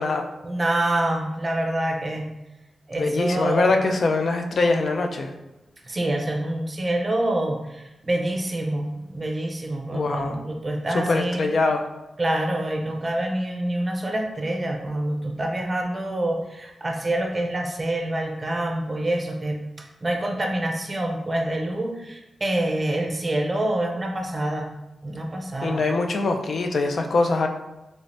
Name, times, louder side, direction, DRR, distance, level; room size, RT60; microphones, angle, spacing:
voice 1, 0.4-2.3 2.9-3.7 5.9-11.5 12.2-19.6 20.0-24.7 25.0-25.8, right 1 dB, 30° right, 2 dB, 0.6 m, -26 dB
voice 2, 3.0-5.3 9.9-10.4 10.9-11.8 25.6-27.5, left 3 dB, 60° left, 4 dB, 0.4 m, -23 dB
3.2 x 3.1 x 2.6 m, 0.99 s
wide cardioid pair, 100°, 0 cm